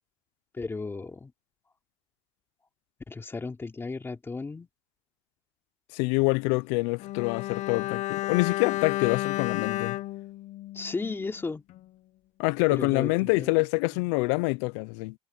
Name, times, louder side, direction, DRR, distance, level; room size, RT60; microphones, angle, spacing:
voice 1, 0.6-1.3 3.1-4.7 10.7-11.6 12.7-13.5 13.9-14.0, left 3 dB, 15° left, 2.8 m, -35 dB
voice 2, 5.9-10.0 12.4-15.1, left 26 dB, 90° left, 0.5 m, -26 dB
Bowed string instrument, 7.0-11.4 11.7-11.8, left 16 dB, 55° left, 0.8 m, -32 dB
cardioid pair, 130°, 14 cm